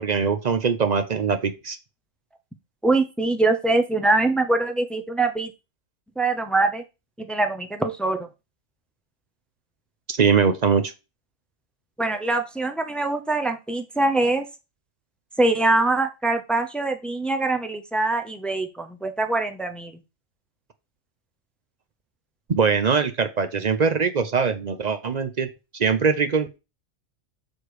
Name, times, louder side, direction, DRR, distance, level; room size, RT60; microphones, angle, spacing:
voice 1, 0.0-1.8 10.1-10.9 22.5-25.5 25.7-26.6, right 5 dB, 45° right, 8 dB, 0.6 m, -22 dB
voice 2, 2.8-5.5 6.2-6.8 7.2-8.3 12.0-14.4 15.4-19.9, right 2 dB, ahead, 6 dB, 0.3 m, -23 dB
6.5 x 4.4 x 4.8 m, 0.27 s
omnidirectional pair, 1.4 m